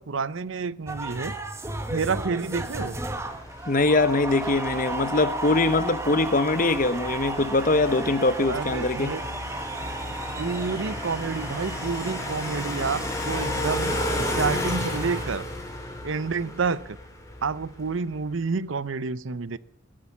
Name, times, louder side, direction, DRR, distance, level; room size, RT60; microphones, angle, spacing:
voice 1, 0.0-1.4 1.9-3.0 8.4-9.2 10.4-15.5 16.0-17.0 17.4-19.6, right 4 dB, 75° right, 0.7 m, -29 dB
sound 1, 0.9-15.3, right 2 dB, 15° right, 1.3 m, -35 dB
sound 2, 1.8-18.0, left 1 dB, 15° left, 3.3 m, -34 dB
voice 2, 3.7-9.1, left 2 dB, 40° left, 1.0 m, -22 dB
17.0 x 11.5 x 7.1 m
head